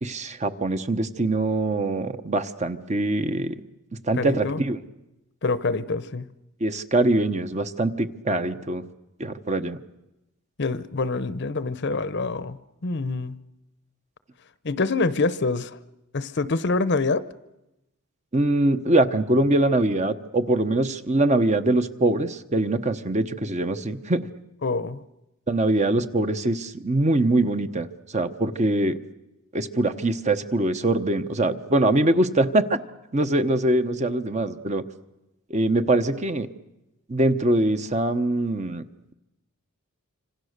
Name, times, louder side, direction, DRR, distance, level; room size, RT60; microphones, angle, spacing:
voice 1, 0.0-3.6 4.0-4.8 6.6-8.8 9.2-9.8 18.3-24.3 25.5-29.0 29.5-32.8 33.1-34.8 35.5-36.5 37.1-38.8, right 2 dB, 35° right, 9 dB, 1.0 m, -23 dB
voice 2, 4.1-4.6 5.4-6.3 10.6-13.4 14.6-15.8 16.1-17.3 24.6-25.0, left 3 dB, 55° left, 15 dB, 0.8 m, -26 dB
26.5 x 26.0 x 6.6 m, 0.95 s
head